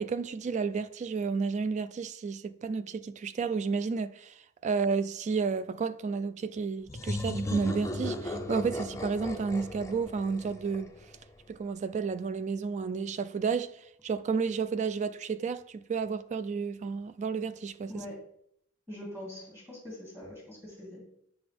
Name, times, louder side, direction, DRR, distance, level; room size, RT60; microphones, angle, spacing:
voice 1, 0.0-4.3 4.6-10.9 11.5-13.7 14.0-17.9, right 5 dB, 35° right, 0.3 m, -31 dB
sound 1, 6.9-11.4, left 1 dB, 15° left, 0.6 m, -36 dB
voice 2, 18.9-21.1, left 1 dB, 10° right, 2.5 m, -43 dB
7.9 x 5.0 x 3.5 m
head